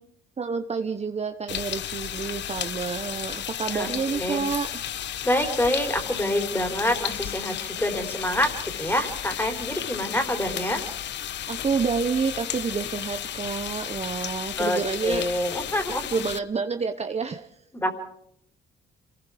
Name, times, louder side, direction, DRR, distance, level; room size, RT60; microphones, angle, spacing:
voice 1, 0.4-4.7 11.5-15.2 16.1-17.5, right 5 dB, 35° right, 6 dB, 1.1 m, -28 dB
sound 1, 1.5-16.4, left 10 dB, 65° left, 0.8 m, -33 dB
voice 2, 3.7-4.4 5.2-10.8 14.6-16.1 17.7-17.9, left 1 dB, 10° left, 5 dB, 4.2 m, -27 dB
26.5 x 19.5 x 5.1 m, 0.75 s
cardioid pair, 90°, 20 cm